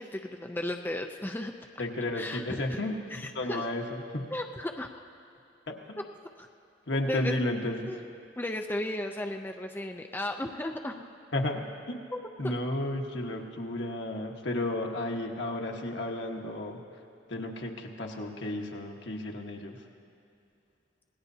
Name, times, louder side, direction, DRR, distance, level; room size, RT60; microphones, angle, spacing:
voice 1, 0.0-1.7 2.1-2.8 3.1-3.7 4.3-4.9 6.0-6.1 6.4-6.5 7.1-7.3 7.9-8.0 8.4-11.0 12.1-12.5, left 1 dB, 10° left, 4 dB, 0.5 m, -35 dB
voice 2, 1.8-2.9 3.3-3.8 4.1-4.3 5.7-6.0 6.9-7.8 11.3-12.0 12.4-16.8 17.3-19.8, left 1 dB, 75° left, 1 dB, 1.4 m, -32 dB
26.5 x 18.5 x 2.8 m, 2.7 s
head